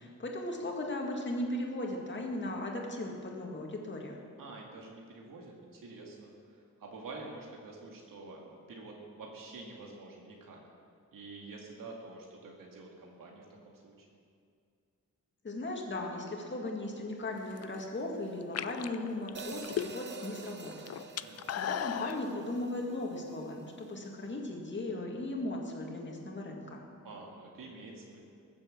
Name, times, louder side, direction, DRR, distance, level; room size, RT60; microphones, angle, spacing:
voice 1, 0.0-4.1 15.4-26.8, left 2 dB, 35° left, 0 dB, 2.1 m, -37 dB
voice 2, 4.4-10.6 11.1-14.1 21.2-21.7 27.0-28.2, right 3 dB, 85° right, -1 dB, 2.1 m, -48 dB
sound 1, 17.4-17.8 18.4-20.2 20.5-22.2, left 10 dB, 50° left, 0.4 m, -36 dB
Hi-hat, 19.3-23.5, right 5 dB, 35° right, 0.9 m, -48 dB
21.0 x 7.6 x 7.5 m, 2.3 s
wide cardioid pair, 170°, 33 cm